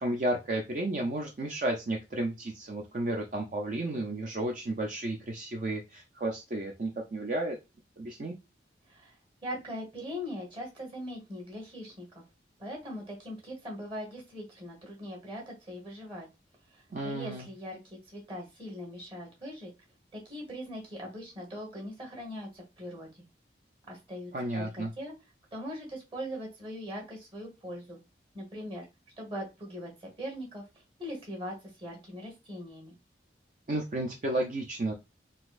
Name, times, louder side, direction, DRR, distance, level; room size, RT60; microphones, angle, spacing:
voice 1, 0.0-7.6 8.0-8.3 16.9-17.5 24.3-24.9 33.7-34.9, right 1 dB, 45° right, 1 dB, 0.4 m, -32 dB
voice 2, 9.4-12.1 12.6-16.3 16.7-19.7 20.1-23.3 23.9-25.1 25.5-28.0 28.3-28.8 29.2-30.6 31.0-32.9, equal, 30° right, 0 dB, 1.3 m, -41 dB
4.0 x 2.4 x 2.4 m, 0.26 s
head